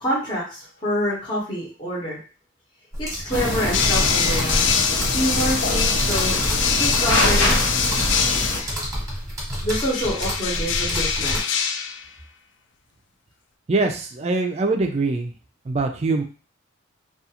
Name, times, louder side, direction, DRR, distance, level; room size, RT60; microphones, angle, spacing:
voice 1, 0.0-2.2 3.0-4.6 5.1-6.4 6.8-7.6 9.6-11.7, equal, 25° left, -7 dB, 0.8 m, -27 dB
sound 1, 2.9-11.4, equal, 15° right, 1.0 m, -28 dB
sound 2, 3.3-8.6, left 1 dB, 75° left, 0.8 m, -25 dB
sound 3, 3.7-8.8 9.7-12.1, left 7 dB, 60° left, 0.3 m, -24 dB
voice 2, 13.7-15.3 15.6-16.2, right 3 dB, 30° right, 4 dB, 0.4 m, -23 dB
2.4 x 2.3 x 2.8 m, 0.37 s
head